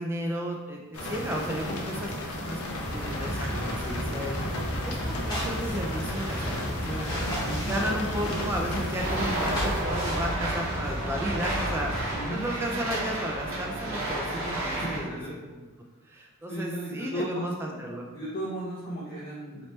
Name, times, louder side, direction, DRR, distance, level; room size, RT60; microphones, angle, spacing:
voice 1, 0.0-4.4 4.8-15.2 15.5-15.7 16.1-18.1, equal, 10° right, 0 dB, 0.3 m, -34 dB
sound 1, 0.9-9.8, left 1 dB, 90° left, 0.6 m, -34 dB
sound 2, 2.7-12.2, equal, 20° left, 0.9 m, -33 dB
voice 2, 7.4-7.7 12.1-12.4 14.8-15.3 16.5-17.8 18.1-19.6, right 1 dB, 45° left, -9 dB, 0.6 m, -35 dB
sound 3, 9.0-15.0, right 1 dB, 65° right, 0.9 m, -31 dB
3.1 x 2.9 x 3.1 m, 1.3 s
head